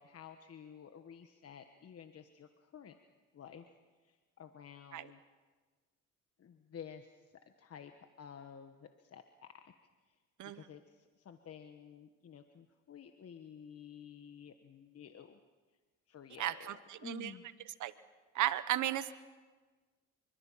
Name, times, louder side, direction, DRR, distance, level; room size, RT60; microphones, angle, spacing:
voice 1, 0.0-3.0 3.3-3.7 4.0-5.2 6.4-7.9 8.2-9.7 10.4-15.4 16.1-17.5, left 8 dB, 50° left, 7 dB, 1.3 m, -52 dB
voice 2, 16.4-17.3 17.8-17.9 18.3-19.1, right 13 dB, 80° right, 14 dB, 1.1 m, -35 dB
26.5 x 24.0 x 5.7 m, 1.4 s
cardioid pair, 90°, 30 cm